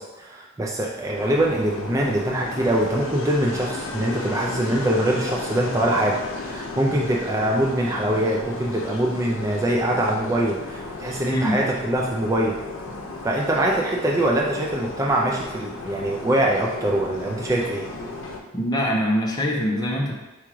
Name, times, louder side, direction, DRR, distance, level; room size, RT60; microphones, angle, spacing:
voice 1, 0.0-12.6 13.2-17.8, right 1 dB, 15° right, -1 dB, 0.3 m, -23 dB
sound 1, 1.1-18.4, left 2 dB, 80° left, 0.7 m, -34 dB
voice 2, 18.5-20.1, equal, 20° left, -2 dB, 0.7 m, -23 dB
4.8 x 3.6 x 3.0 m, 1.2 s
head